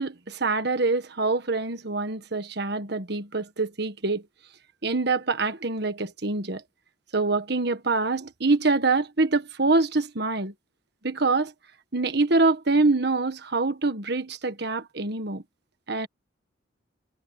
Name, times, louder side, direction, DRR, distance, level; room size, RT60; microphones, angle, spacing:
voice 1, 0.0-4.2 4.8-6.6 7.1-10.5 11.0-11.5 11.9-15.4 15.9-16.1, right 3 dB, 55° right, 1.6 m, -25 dB
head